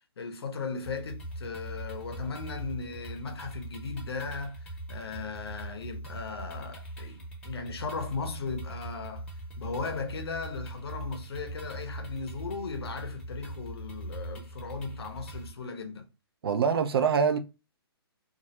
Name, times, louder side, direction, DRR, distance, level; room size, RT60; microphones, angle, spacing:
voice 1, 0.2-9.2 9.6-16.1, left 4 dB, 70° left, 0.7 m, -37 dB
sound 1, 0.9-15.5, right 1 dB, 10° left, 0.8 m, -41 dB
voice 2, 16.4-17.4, right 6 dB, 70° right, 0.4 m, -24 dB
2.4 x 2.0 x 2.7 m
hypercardioid pair, 130°, 13 cm